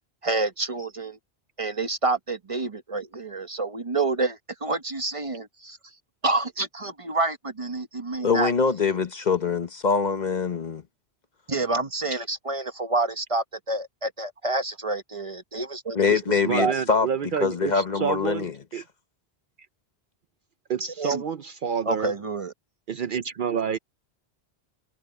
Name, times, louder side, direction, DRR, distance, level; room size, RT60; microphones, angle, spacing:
voice 1, 0.2-1.2 1.6-5.8 6.2-8.5 11.5-16.2 16.6-17.0 20.8-21.2 21.9-22.5, right 3 dB, 35° right, 1.0 m, -28 dB
voice 2, 8.2-10.8 15.9-17.1 17.4-18.8, left 5 dB, 45° left, 1.1 m, -24 dB
voice 3, 16.4-18.8 20.7-22.1 22.9-23.8, right 7 dB, 55° right, 0.7 m, -28 dB
omnidirectional pair, 1.1 m